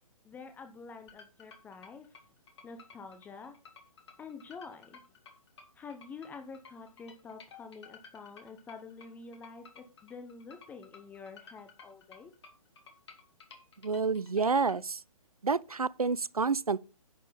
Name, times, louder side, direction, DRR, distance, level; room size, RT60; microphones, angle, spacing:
voice 1, 0.2-2.1 2.6-3.5 4.2-5.0 5.7-12.3, left 4 dB, 10° left, 0.9 m, -47 dB
sound 1, 1.1-14.8, left 5 dB, 45° left, 2.5 m, -54 dB
voice 2, 13.8-15.0 15.4-16.8, right 4 dB, 80° right, 0.6 m, -29 dB
11.0 x 8.0 x 4.0 m
figure-of-eight pair, 135°, 19 cm